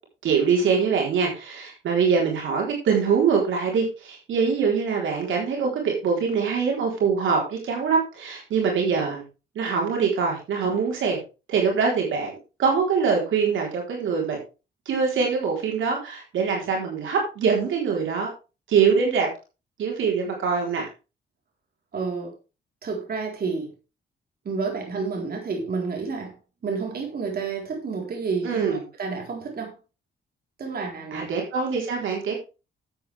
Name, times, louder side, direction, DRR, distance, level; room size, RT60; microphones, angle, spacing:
voice 1, 0.2-9.2 9.6-11.2 11.5-14.4 14.9-18.3 18.7-19.3 19.8-20.9 28.4-28.8 31.1-32.4, right 5 dB, 80° right, 0 dB, 4.0 m, -23 dB
voice 2, 21.9-22.3 22.8-23.7 24.4-26.4 26.6-29.8 30.6-31.3, right 4 dB, 50° right, 1 dB, 4.1 m, -30 dB
12.0 x 8.4 x 3.5 m, 0.30 s
cardioid pair, 110°, 20 cm